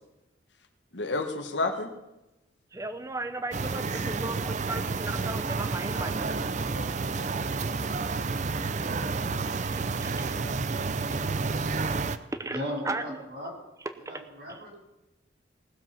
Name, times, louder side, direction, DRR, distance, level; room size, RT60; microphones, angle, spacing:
voice 1, 0.9-1.9 6.7-7.8 10.1-10.5, left 3 dB, 75° left, 6 dB, 1.4 m, -33 dB
voice 2, 2.7-6.5 9.6-10.4 12.3-13.2 13.8-14.1 14.5-14.6, right 2 dB, 15° right, 10 dB, 0.8 m, -36 dB
sound 1, 3.5-12.2, right 4 dB, 40° right, 0.5 m, -30 dB
voice 3, 12.5-13.5 14.1-14.7, equal, 60° right, 0 dB, 4.6 m, -36 dB
18.5 x 7.6 x 5.7 m, 0.96 s
head